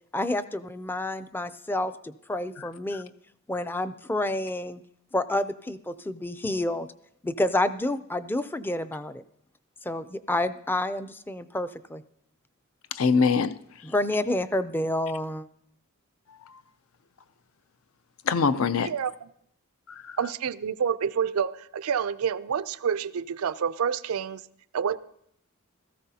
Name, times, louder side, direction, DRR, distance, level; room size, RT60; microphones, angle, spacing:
voice 1, 0.1-3.1 3.5-4.8 5.1-6.9 7.2-9.2 9.8-12.0 13.8-15.5, left 1 dB, 10° left, 0.4 m, -29 dB
voice 2, 12.9-13.6 16.3-16.4 18.3-18.9 19.9-20.1, left 5 dB, 70° left, 0.5 m, -24 dB
voice 3, 20.2-24.4 24.7-25.0, right 7 dB, 90° right, 0.4 m, -28 dB
17.0 x 14.0 x 2.8 m
head